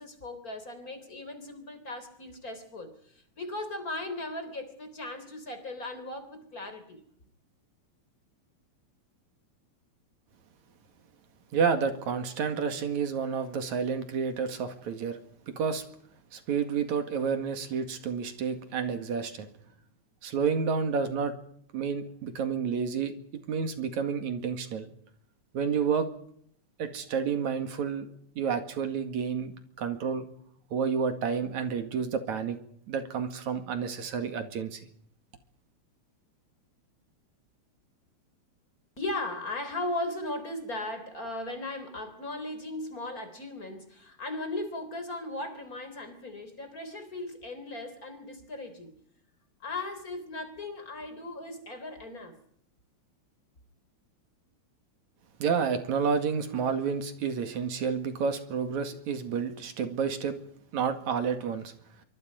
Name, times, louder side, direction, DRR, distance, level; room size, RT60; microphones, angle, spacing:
voice 1, 0.0-7.0 39.0-48.9 49.6-52.4, left 2 dB, 30° left, 8 dB, 3.9 m, -37 dB
voice 2, 11.5-15.2 15.5-15.8 16.3-19.5 20.2-21.3 21.7-23.1 23.5-24.9 25.5-26.1 26.8-28.1 28.4-30.3 30.7-32.6 32.9-34.8 55.4-60.4 60.7-61.7, right 6 dB, 75° right, 8 dB, 3.4 m, -30 dB
26.0 x 24.0 x 5.3 m, 0.66 s
omnidirectional pair, 3.3 m